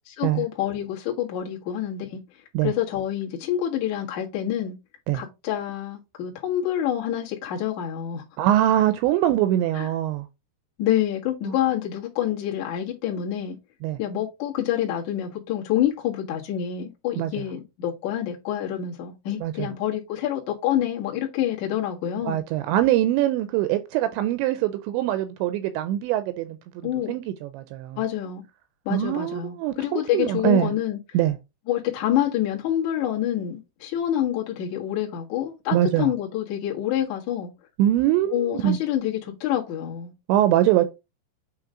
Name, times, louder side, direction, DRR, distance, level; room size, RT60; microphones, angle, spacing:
voice 1, 0.2-2.2 2.6-4.7 5.1-8.2 9.8-9.9 10.8-13.6 14.0-22.4 26.8-27.2 28.0-28.4 28.9-31.0 31.7-37.5 38.3-40.1, left 11 dB, 60° left, 2.0 m, -27 dB
voice 2, 8.4-10.3 11.5-11.6 13.8-14.0 17.2-17.4 19.4-19.7 22.3-28.0 28.9-30.7 31.1-31.4 35.7-36.1 37.8-38.8 40.3-40.9, right 12 dB, 85° right, 2.7 m, -23 dB
8.6 x 3.1 x 3.7 m
omnidirectional pair, 5.5 m